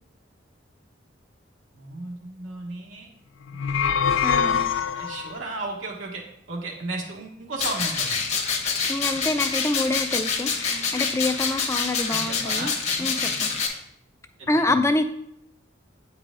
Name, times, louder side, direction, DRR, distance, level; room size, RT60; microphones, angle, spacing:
voice 1, 1.7-3.1 4.9-8.2 12.1-12.7 14.4-14.7, right 2 dB, 90° right, -2 dB, 1.3 m, -34 dB
sound 1, 3.5-5.4, left 7 dB, 85° left, 0.4 m, -24 dB
voice 2, 4.2-4.6 8.9-12.7 13.0-13.3 14.5-15.1, left 2 dB, 15° left, 8 dB, 0.4 m, -26 dB
sound 2, 7.6-13.7, left 5 dB, 35° left, 0.9 m, -26 dB
8.3 x 4.8 x 3.7 m, 0.73 s
head